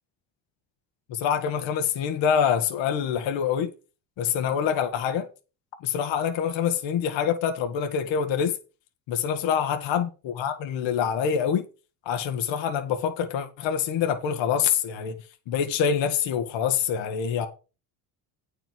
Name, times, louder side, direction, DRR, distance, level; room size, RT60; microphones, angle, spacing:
voice 1, 1.1-3.7 4.2-5.3 5.8-8.6 9.1-11.6 12.0-15.1 15.5-17.5, left 8 dB, 65° left, 1.6 m, -25 dB
9.0 x 5.2 x 6.0 m
supercardioid pair, 80°, 48 cm